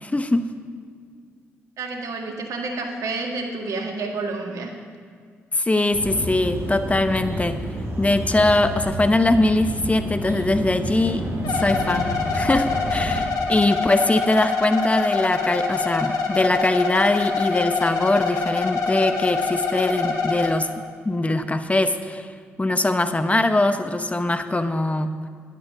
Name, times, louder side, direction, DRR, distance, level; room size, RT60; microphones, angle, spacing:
voice 1, 0.0-0.5 5.5-7.6 8.0-11.2 11.5-20.7 21.0-22.3 22.6-25.3, left 2 dB, 20° left, 9 dB, 0.9 m, -22 dB
voice 2, 1.8-4.7, right 3 dB, 70° right, 2 dB, 1.8 m, -29 dB
sound 1, 5.9-13.2, right 1 dB, 45° right, 3.9 m, -30 dB
sound 2, 11.4-20.5, left 4 dB, 70° left, 1.5 m, -25 dB
11.5 x 11.0 x 6.1 m, 2.1 s
hypercardioid pair, 40°, 6 cm